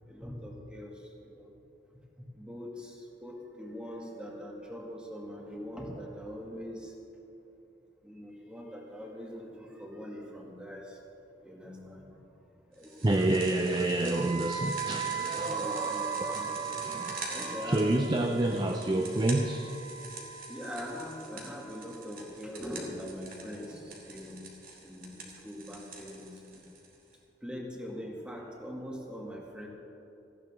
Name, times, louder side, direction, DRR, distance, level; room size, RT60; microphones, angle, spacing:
voice 1, 0.1-0.9 1.2-1.5 2.4-6.9 8.0-11.0 11.4-12.0 12.7-13.6 15.5-16.5 17.3-18.3 20.5-24.4 24.8-26.6 27.4-29.7, equal, 5° right, -2 dB, 2.2 m, -42 dB
sound 1, 12.8-27.1, right 3 dB, 55° right, 2.5 m, -45 dB
voice 2, 13.0-19.7, right 2 dB, 25° right, 4 dB, 0.6 m, -29 dB
Wind instrument woodwind instrument, 14.1-22.1, right 8 dB, 80° right, 2.1 m, -39 dB
18.0 x 15.0 x 3.7 m, 2.9 s
head